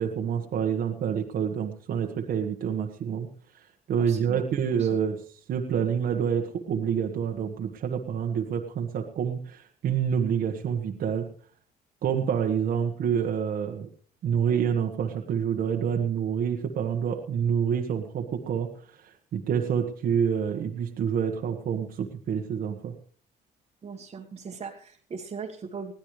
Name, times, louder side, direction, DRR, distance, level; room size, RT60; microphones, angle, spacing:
voice 1, 0.0-3.3 3.5-5.2 5.5-11.3 12.0-13.9 14.2-22.9, right 7 dB, 60° right, 2 dB, 1.5 m, -27 dB
voice 2, 4.1-4.4 4.8-4.9 23.8-25.9, right 5 dB, 35° right, 0 dB, 1.6 m, -39 dB
21.0 x 15.0 x 3.3 m, 0.43 s
cardioid pair, 110°, 17 cm